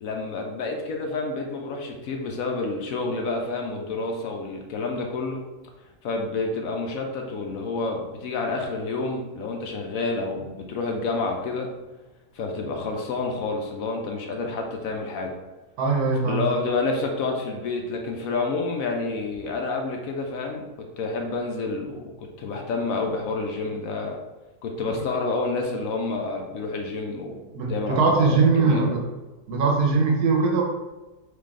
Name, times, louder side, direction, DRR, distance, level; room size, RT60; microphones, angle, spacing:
voice 1, 0.0-5.4 6.0-11.7 12.3-15.3 16.2-20.7 21.0-24.2 24.6-27.4 27.7-28.9, left 3 dB, 70° left, 2 dB, 1.0 m, -29 dB
voice 2, 15.8-16.4 27.5-29.0 29.5-30.6, right 4 dB, 80° right, 1 dB, 1.3 m, -21 dB
3.8 x 3.3 x 3.6 m, 1.2 s
omnidirectional pair, 1.7 m